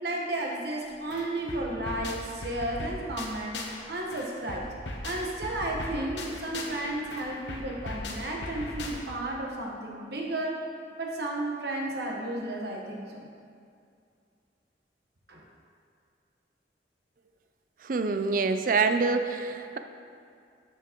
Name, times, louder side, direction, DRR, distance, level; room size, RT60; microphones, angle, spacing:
voice 1, 0.0-4.7 5.0-10.6 11.0-13.3 15.3-15.4, right 1 dB, 65° right, -1 dB, 1.1 m, -33 dB
sound 1, 0.8-0.9 1.1-3.8 4.1-9.3, left 2 dB, 80° left, 0.9 m, -38 dB
voice 2, 17.9-19.8, right 4 dB, 50° right, 8 dB, 0.4 m, -26 dB
12.5 x 6.0 x 3.0 m, 2.4 s
head